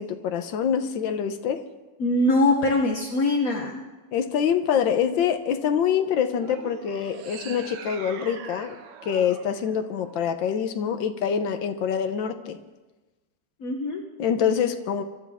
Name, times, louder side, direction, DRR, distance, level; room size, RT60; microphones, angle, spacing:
voice 1, 0.0-1.6 4.1-8.8 9.0-12.6 14.2-15.0, left 8 dB, 90° left, 8 dB, 1.6 m, -25 dB
voice 2, 2.0-3.8 13.6-14.0, left 2 dB, 55° left, 1 dB, 1.4 m, -22 dB
sound 1, 6.3-10.7, right 7 dB, 70° right, 1.5 m, -42 dB
23.5 x 12.5 x 3.5 m, 1.2 s
omnidirectional pair, 2.0 m